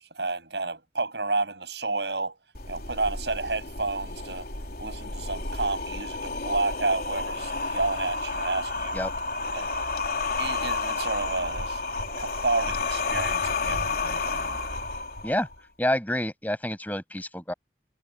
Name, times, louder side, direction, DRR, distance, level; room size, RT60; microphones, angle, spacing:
voice 1, 0.0-2.4 2.7-4.5 4.8-9.0 9.5-9.7 10.4-11.8 12.2-14.6, right 3 dB, 75° right, 7.4 m, -30 dB
sound 1, 2.5-15.5, left 3 dB, 55° left, 4.2 m, -31 dB
voice 2, 15.8-17.5, left 1 dB, 10° left, 7.6 m, -28 dB
head